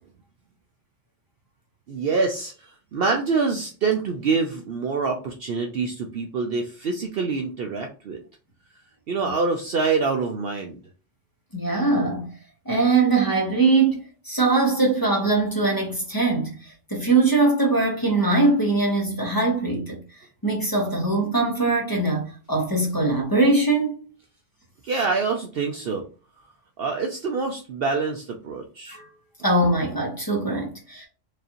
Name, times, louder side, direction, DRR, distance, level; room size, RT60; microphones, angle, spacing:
voice 1, 1.9-8.2 9.1-10.8 24.8-26.0 26.8-29.0, right 4 dB, 60° right, 0.7 m, -26 dB
voice 2, 11.5-12.3 12.6-20.0 20.4-23.9 28.9-29.1 29.4-31.1, right 3 dB, 20° left, 1.0 m, -22 dB
4.8 x 2.6 x 2.9 m
omnidirectional pair, 1.3 m